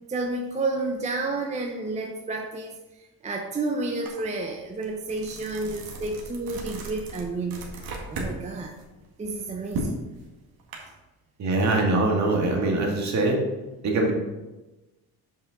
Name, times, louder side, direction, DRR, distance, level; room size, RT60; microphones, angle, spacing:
voice 1, 0.1-8.7 9.2-10.0 10.8-10.9, right 3 dB, 20° right, 2 dB, 0.5 m, -31 dB
sound 1, 4.1-4.2 4.6-8.3 8.7-10.8, right 2 dB, 65° right, 1.7 m, -35 dB
voice 2, 11.4-13.4 13.8-14.1, right 2 dB, 45° right, 1 dB, 1.8 m, -23 dB
7.5 x 5.5 x 3.9 m, 1.1 s
cardioid pair, 140°, 38 cm